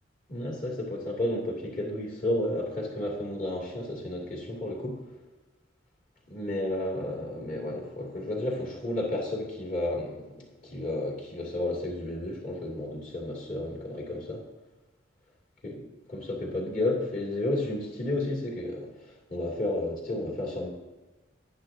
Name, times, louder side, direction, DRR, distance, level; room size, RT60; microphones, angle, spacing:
voice 1, 0.3-5.0 6.3-14.4 15.6-15.7 16.1-18.9 19.3-20.7, left 1 dB, 45° left, -2 dB, 2.7 m, -32 dB
10.5 x 10.5 x 2.8 m, 1.2 s
head